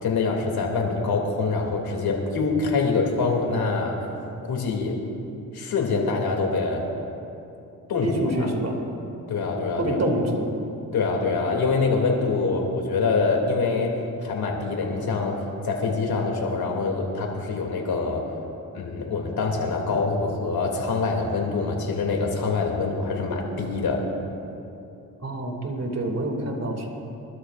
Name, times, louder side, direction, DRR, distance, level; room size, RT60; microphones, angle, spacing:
voice 1, 0.0-4.0 4.4-5.0 5.5-6.8 7.9-8.5 9.3-10.0 10.9-15.4 15.6-18.3 18.7-24.1, left 4 dB, 75° left, 0 dB, 2.7 m, -25 dB
voice 2, 8.0-8.8 9.8-10.5 25.2-26.9, right 1 dB, 45° right, 1 dB, 2.6 m, -26 dB
24.5 x 13.0 x 2.5 m, 2.8 s
cardioid pair, 55°, 37 cm